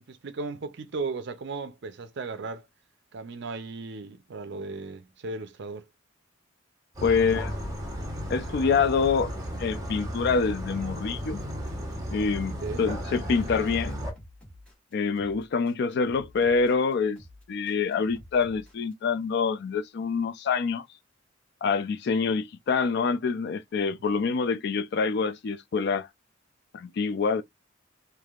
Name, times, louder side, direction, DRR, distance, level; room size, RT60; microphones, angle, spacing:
voice 1, 0.1-2.7 3.1-5.9 12.6-12.8, right 3 dB, 60° right, 0.5 m, -36 dB
sound 1, 6.9-14.1, equal, 20° right, 1.0 m, -34 dB
voice 2, 7.0-7.5 8.3-11.4 12.1-14.1 14.9-17.2 17.5-20.8 21.6-26.1 26.7-27.4, left 5 dB, 55° left, 0.3 m, -26 dB
sound 2, 11.2-18.9, equal, 5° left, 1.6 m, -51 dB
3.3 x 2.6 x 2.4 m
head